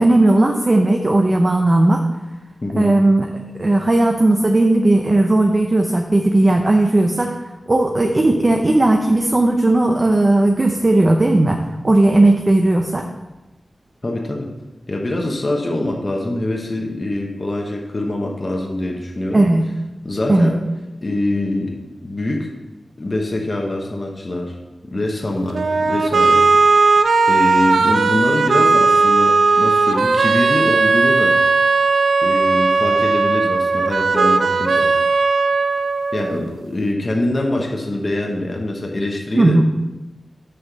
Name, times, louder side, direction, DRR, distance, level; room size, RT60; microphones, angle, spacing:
voice 1, 0.0-2.0 2.8-3.3 3.6-7.3 7.7-11.6 11.8-13.0 19.3-19.6 20.3-20.5 39.3-39.6, right 2 dB, 30° right, 2 dB, 0.6 m, -15 dB
voice 2, 2.6-2.9 14.0-14.5 14.9-19.4 20.0-20.6 21.0-21.8 22.0-22.5 23.0-24.6 24.9-27.0 27.3-31.4 32.2-34.9 36.1-39.6, left 1 dB, 35° left, 0 dB, 1.0 m, -24 dB
sound 1, 25.5-36.5, right 3 dB, 75° right, 0.5 m, -16 dB
6.7 x 5.6 x 6.1 m, 1.1 s
wide cardioid pair, 120°, 0 cm